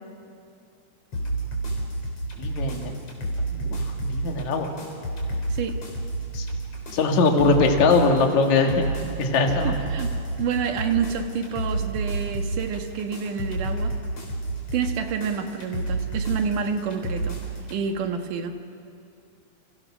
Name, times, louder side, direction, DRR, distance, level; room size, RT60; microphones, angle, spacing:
sound 1, 1.1-17.8, right 2 dB, 45° left, 4.7 m, -30 dB
voice 1, 2.4-3.0 3.5-4.7 6.3-6.5 6.9-8.9 9.2-9.8, left 3 dB, 60° left, 3 dB, 3.3 m, -21 dB
voice 2, 9.6-10.1 10.4-14.0 14.7-17.4 17.7-18.6, right 6 dB, 70° right, 6 dB, 3.0 m, -28 dB
29.5 x 27.0 x 6.2 m, 2.5 s
omnidirectional pair, 3.9 m